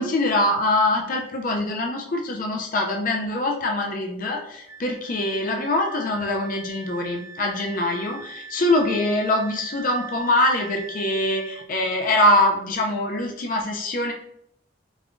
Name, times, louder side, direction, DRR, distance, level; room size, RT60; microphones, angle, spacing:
voice 1, 0.0-14.1, left 1 dB, 45° left, 1 dB, 0.4 m, -23 dB
Wind instrument woodwind instrument, 4.7-11.7, right 4 dB, 20° right, 0.6 m, -42 dB
5.2 x 2.2 x 2.5 m, 0.75 s
head